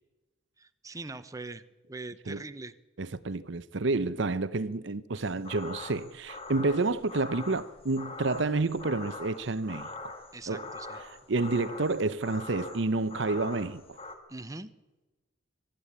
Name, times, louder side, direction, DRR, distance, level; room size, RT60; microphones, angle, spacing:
voice 1, 0.6-1.6 1.9-2.7 10.3-11.0 14.3-14.7, right 3 dB, 15° right, 0.8 m, -42 dB
voice 2, 3.0-9.9 10.5-10.7 11.3-14.0, right 3 dB, 60° right, 0.7 m, -29 dB
sound 1, 5.1-14.2, left 3 dB, 30° left, 2.1 m, -43 dB
23.5 x 13.0 x 8.7 m
head